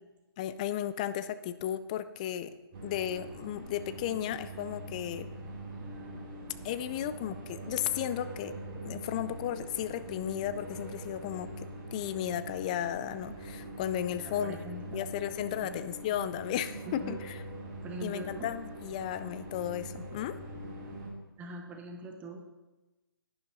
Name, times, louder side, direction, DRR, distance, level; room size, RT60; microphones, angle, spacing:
voice 1, 0.4-2.5 2.8-5.3 6.6-8.5 8.8-14.6 14.9-17.4 18.0-20.4, left 11 dB, 20° left, 13 dB, 0.3 m, -34 dB
sound 1, 2.7-21.1, right 1 dB, 25° right, 2.5 m, -43 dB
voice 2, 14.2-15.0 15.6-15.8 16.9-17.2 17.8-18.5 21.4-22.4, right 2 dB, 10° right, 3 dB, 0.9 m, -42 dB
11.5 x 10.0 x 4.0 m, 1.1 s
figure-of-eight pair, 145°, 13 cm